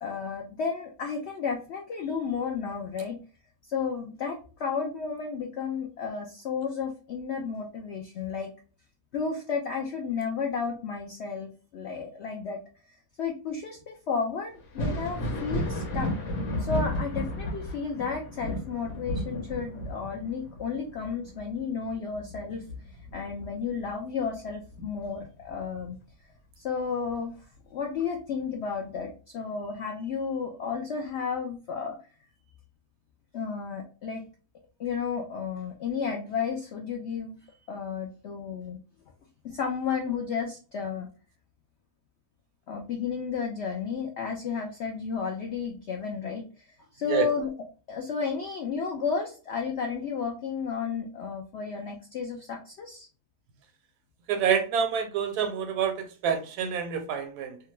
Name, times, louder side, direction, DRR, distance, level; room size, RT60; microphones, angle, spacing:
voice 1, 0.0-3.2 3.7-8.5 9.1-12.6 13.2-16.1 16.6-22.6 23.1-26.0 26.6-27.3 27.7-32.0 33.3-34.2 34.8-37.4 37.7-38.8 39.4-41.1 42.7-46.4 46.9-47.5 47.9-53.1, left 5 dB, 70° left, 0.6 m, -32 dB
Thunder, 14.6-23.9 24.3-25.5 27.1-27.2 28.0-28.1, left 1 dB, 55° left, 1.1 m, -33 dB
voice 2, 54.3-57.6, right 7 dB, 80° right, 1.1 m, -27 dB
2.8 x 2.3 x 3.0 m
omnidirectional pair, 1.7 m